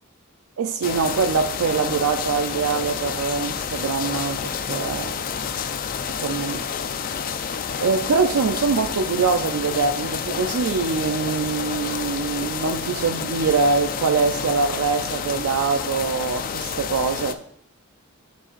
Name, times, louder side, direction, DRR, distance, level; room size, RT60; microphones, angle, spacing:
voice 1, 0.6-5.1 6.1-6.6 7.8-17.4, right 5 dB, 85° right, 6 dB, 0.4 m, -23 dB
sound 1, 0.8-17.3, left 7 dB, 40° left, 0.3 m, -29 dB
9.5 x 5.6 x 2.5 m, 0.67 s
head